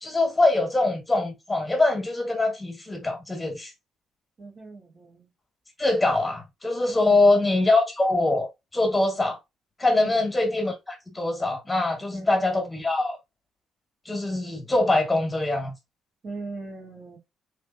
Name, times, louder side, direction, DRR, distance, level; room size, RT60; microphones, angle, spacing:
voice 1, 0.0-3.7 5.8-8.5 8.7-9.4 9.8-13.2 14.0-15.7, left 2 dB, 15° left, 1.7 m, -23 dB
voice 2, 4.4-5.3 5.9-6.2 7.0-7.3 10.0-10.3 12.1-12.4 16.2-17.2, right 3 dB, 45° right, 2.1 m, -39 dB
3.4 x 3.4 x 2.8 m
cardioid pair, 90°, 0 cm